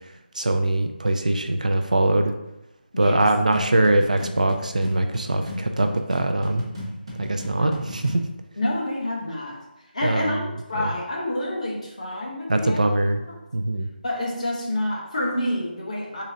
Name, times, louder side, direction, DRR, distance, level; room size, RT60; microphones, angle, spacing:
voice 1, 0.4-2.3 3.0-6.6 7.2-8.2 10.0-10.4 10.8-10.9 12.5-13.2 13.5-13.9, right 2 dB, 45° right, 6 dB, 0.3 m, -22 dB
voice 2, 2.9-3.3 7.5-7.8 8.6-9.6 9.9-10.4 10.7-12.8 13.3-13.4 14.0-16.2, left 1 dB, 45° left, -2 dB, 0.9 m, -28 dB
sound 1, 3.2-8.3, equal, 30° right, 0.9 m, -35 dB
4.1 x 3.8 x 2.6 m, 0.92 s
figure-of-eight pair, 180°, 6 cm